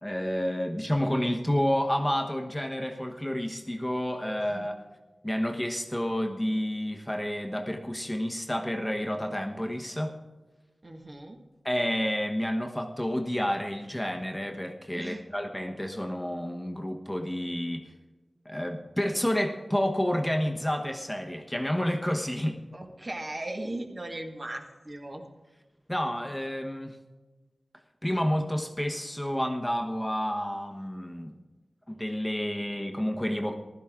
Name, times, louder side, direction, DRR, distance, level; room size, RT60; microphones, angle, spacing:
voice 1, 0.0-4.7 5.2-10.1 11.6-17.8 18.4-22.6 25.9-27.0 28.0-31.4 31.9-33.5, equal, 10° left, 3 dB, 1.2 m, -30 dB
voice 2, 4.4-4.8 10.8-11.4 14.9-15.2 22.7-25.2, right 1 dB, 40° right, 2 dB, 1.9 m, -38 dB
15.5 x 12.0 x 3.7 m, 1.2 s
wide cardioid pair, 75°, 0 cm